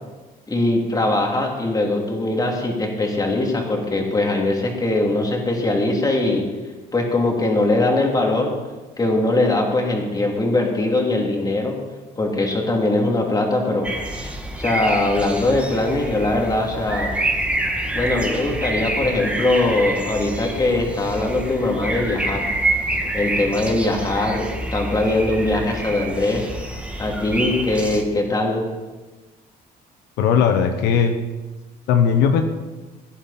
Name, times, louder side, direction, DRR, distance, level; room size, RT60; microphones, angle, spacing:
voice 1, 0.5-6.4 6.9-8.5 9.0-11.7 12.2-13.9 14.1-17.1 17.9-22.5 23.1-26.5 27.0-28.6, left 2 dB, 20° left, 0 dB, 3.0 m, -21 dB
sound 1, 13.8-28.0, right 1 dB, 5° right, 1.6 m, -27 dB
voice 2, 30.2-31.1 31.9-32.4, left 7 dB, 85° left, 6 dB, 1.1 m, -17 dB
17.0 x 10.5 x 4.3 m, 1.2 s
cardioid pair, 110°, 17 cm